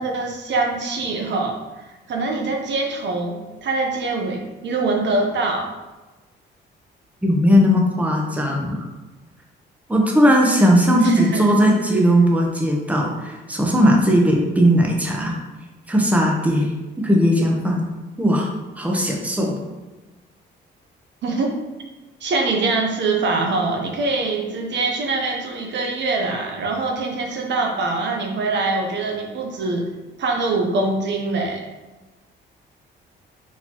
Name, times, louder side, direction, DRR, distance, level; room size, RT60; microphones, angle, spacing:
voice 1, 0.0-1.6 2.1-5.7 11.0-11.5 21.2-21.6 22.2-29.9 30.2-31.6, right 3 dB, 65° right, 1 dB, 0.8 m, -23 dB
voice 2, 7.2-8.8 9.9-15.4 15.9-16.7 17.0-17.8 18.2-18.5 18.8-19.6, equal, 5° right, -1 dB, 0.9 m, -18 dB
4.2 x 4.1 x 2.9 m, 1.1 s
cardioid pair, 90°, 20 cm